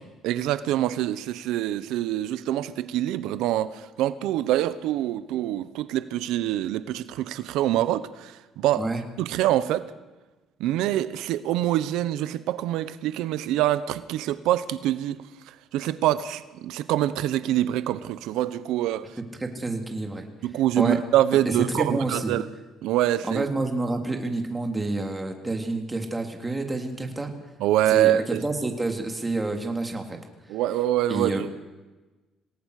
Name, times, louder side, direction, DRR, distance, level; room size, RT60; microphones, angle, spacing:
voice 1, 0.2-8.8 9.2-9.8 10.6-15.2 15.7-19.1 20.4-22.4 22.8-23.4 27.6-28.5 30.5-31.5, right 13 dB, 85° right, 14 dB, 1.1 m, -25 dB
voice 2, 19.4-20.2 20.8-21.0 21.5-22.3 23.3-27.3 27.9-30.2 31.1-31.5, right 2 dB, 15° right, 4 dB, 3.3 m, -28 dB
27.5 x 18.5 x 6.7 m, 1.2 s
cardioid pair, 120°, 0 cm